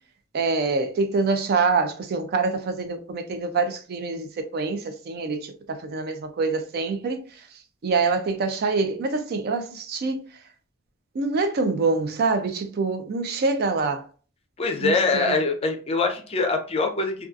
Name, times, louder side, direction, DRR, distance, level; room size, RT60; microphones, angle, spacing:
voice 1, 0.3-7.2 7.8-10.3 11.1-14.0 14.8-15.4, right 4 dB, 50° right, 0.4 m, -25 dB
voice 2, 14.6-17.1, left 3 dB, 30° left, 0.4 m, -23 dB
2.5 x 2.3 x 2.4 m
head